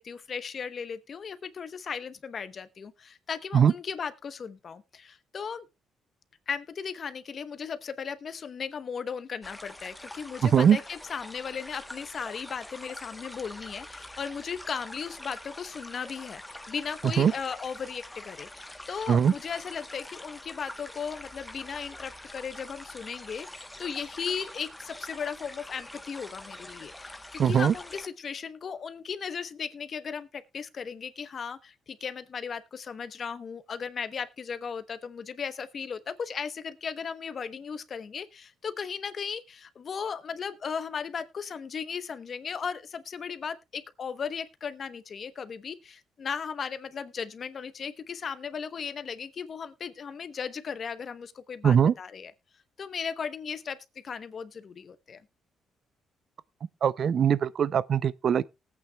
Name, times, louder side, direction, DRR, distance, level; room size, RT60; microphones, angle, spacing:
voice 1, 0.0-5.7 6.5-52.3 52.8-53.8 54.0-55.2, left 6 dB, 50° left, 1.0 m, -36 dB
sound 1, 9.4-28.1, left 1 dB, 10° left, 1.0 m, -45 dB
voice 2, 10.4-10.8 17.2-17.3 19.1-19.3 27.4-27.7 51.6-51.9 56.8-58.4, right 8 dB, 55° right, 0.5 m, -21 dB
19.5 x 8.6 x 2.3 m
cardioid pair, 90°, 0 cm